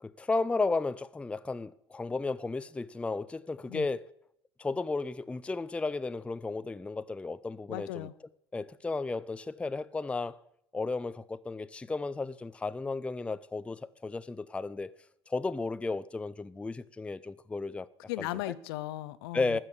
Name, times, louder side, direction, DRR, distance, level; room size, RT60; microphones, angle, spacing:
voice 1, 0.0-4.0 4.6-8.1 8.5-10.4 10.7-14.9 15.3-17.9 19.3-19.6, left 3 dB, 10° left, 0.4 m, -33 dB
voice 2, 7.7-8.1 18.1-19.6, left 16 dB, 65° left, 0.7 m, -37 dB
13.0 x 7.4 x 8.2 m
figure-of-eight pair, 60°, 14 cm